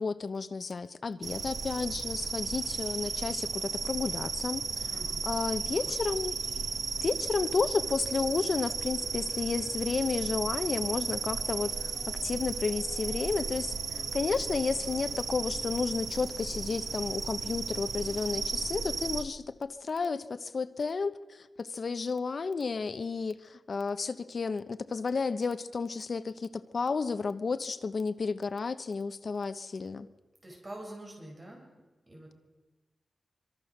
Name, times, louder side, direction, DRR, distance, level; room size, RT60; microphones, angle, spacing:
voice 1, 0.0-4.9 5.3-6.4 7.0-30.1, left 4 dB, 50° left, 11 dB, 1.0 m, -32 dB
sound 1, 1.2-19.2, right 5 dB, 70° right, 1.4 m, -35 dB
voice 2, 4.9-5.3 5.6-6.0 30.4-31.6 32.1-32.3, right 1 dB, 25° right, -1 dB, 8.0 m, -46 dB
sound 2, 7.2-15.2, equal, 5° left, 4.0 m, -53 dB
25.0 x 24.0 x 6.7 m, 1.2 s
wide cardioid pair, 140°, 0 cm